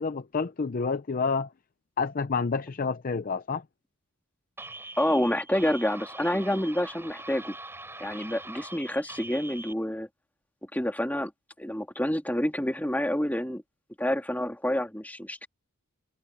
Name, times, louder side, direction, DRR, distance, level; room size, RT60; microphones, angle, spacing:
voice 1, 0.0-1.5 2.0-3.6, left 4 dB, 40° left, 0.5 m, -29 dB
sound 1, 4.6-9.7, right 2 dB, 10° right, 7.7 m, -43 dB
voice 2, 5.0-7.5 8.0-10.1 10.7-11.3 11.6-13.6 14.0-15.5, left 1 dB, 10° left, 2.7 m, -28 dB
head